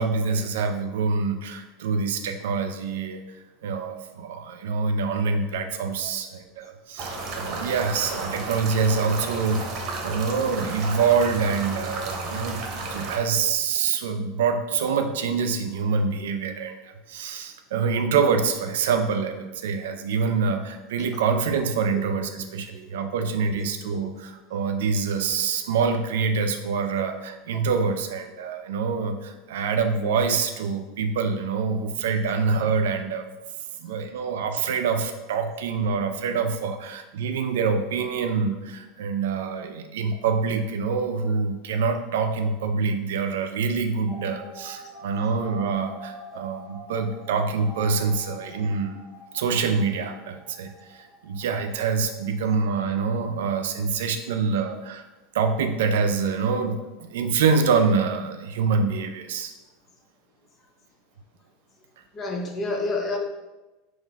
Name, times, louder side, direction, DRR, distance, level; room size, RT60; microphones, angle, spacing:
voice 1, 0.0-3.2 3.6-12.6 12.9-33.3 33.8-49.0 49.3-55.1 55.3-59.5, right 5 dB, 85° right, 6 dB, 0.4 m, -25 dB
sound 1, 7.0-13.2, right 3 dB, 50° right, 0.8 m, -33 dB
sound 2, 44.1-52.6 52.9-53.0 53.1-53.2, right 1 dB, ahead, 1.4 m, -44 dB
voice 2, 62.1-63.2, left 2 dB, 30° left, 3 dB, 0.6 m, -28 dB
4.0 x 2.5 x 4.1 m, 1.1 s
supercardioid pair, 125°, 0 cm